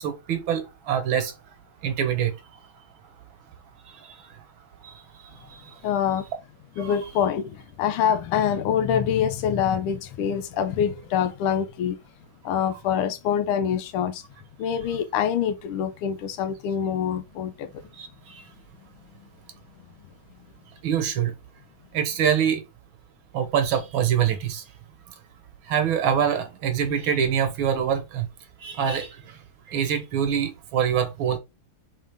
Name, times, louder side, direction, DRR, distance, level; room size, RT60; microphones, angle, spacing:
voice 1, 0.0-1.3 1.8-2.3 3.9-4.2 4.8-5.8 6.8-6.9 17.9-18.4 20.8-21.3 21.9-22.6 23.3-24.6 25.7-28.3 28.6-29.4 29.7-31.4, right 8 dB, 70° right, 1.7 m, -25 dB
voice 2, 5.8-6.3 6.8-12.0 12.4-14.2 14.6-17.8, left 8 dB, 85° left, 1.6 m, -25 dB
4.0 x 3.8 x 3.4 m
omnidirectional pair, 2.4 m